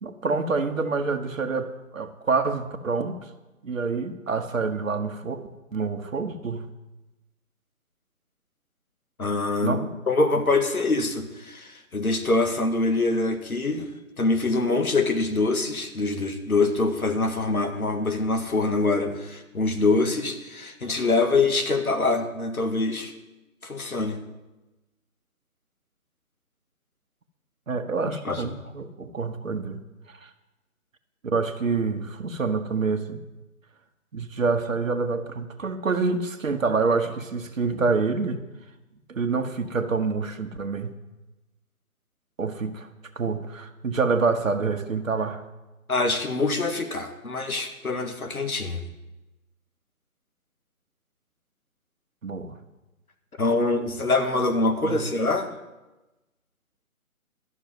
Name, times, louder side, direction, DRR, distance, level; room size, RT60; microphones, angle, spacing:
voice 1, 0.0-3.2 3.6-6.7 9.6-9.9 27.7-29.8 30.2-30.3 31.2-33.2 34.1-38.4 39.1-40.9 42.4-42.9 43.2-45.4 52.2-52.6 54.8-55.1, right 4 dB, 65° right, 6 dB, 1.2 m, -27 dB
voice 2, 9.2-13.9 14.2-23.1 23.6-24.2 28.2-28.5 45.9-48.8 53.4-55.5, left 3 dB, 80° left, 6 dB, 1.9 m, -24 dB
12.5 x 6.5 x 9.3 m, 1.1 s
figure-of-eight pair, 155°, 43 cm